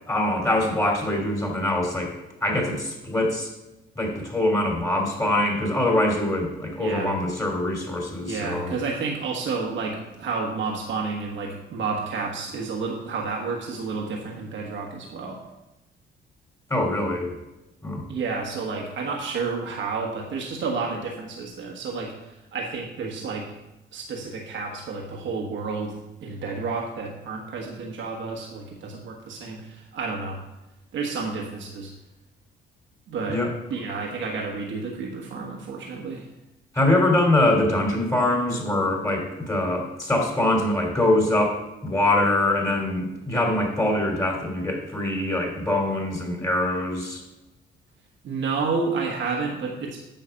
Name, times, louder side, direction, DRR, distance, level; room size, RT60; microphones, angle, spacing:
voice 1, 0.1-2.1 2.4-3.5 3.9-8.7 16.7-17.3 17.8-18.1 33.3-33.5 36.7-47.2, left 1 dB, 15° left, 1 dB, 2.6 m, -23 dB
voice 2, 6.8-7.1 8.2-15.4 18.1-23.5 23.9-25.9 26.2-30.4 30.9-31.9 33.1-33.4 33.7-36.2 48.2-50.0, right 4 dB, 75° right, -1 dB, 1.4 m, -30 dB
9.1 x 5.8 x 5.7 m, 0.97 s
cardioid pair, 90°, 20 cm